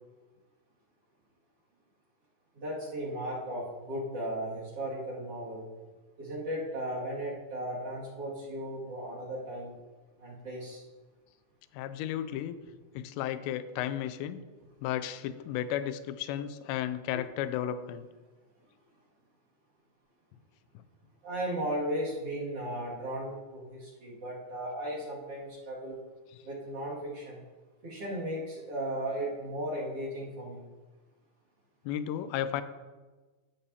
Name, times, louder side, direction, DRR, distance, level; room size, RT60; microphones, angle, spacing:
voice 1, 2.5-5.6 6.2-9.7 10.2-10.8 17.1-17.2 21.2-26.0 26.4-27.4 27.8-30.6, right 1 dB, 45° right, -5 dB, 2.3 m, -36 dB
voice 2, 11.8-12.6 13.0-14.4 14.8-18.1 31.9-32.6, left 11 dB, 85° left, 11 dB, 2.6 m, -33 dB
13.0 x 6.8 x 2.8 m, 1.3 s
omnidirectional pair, 5.4 m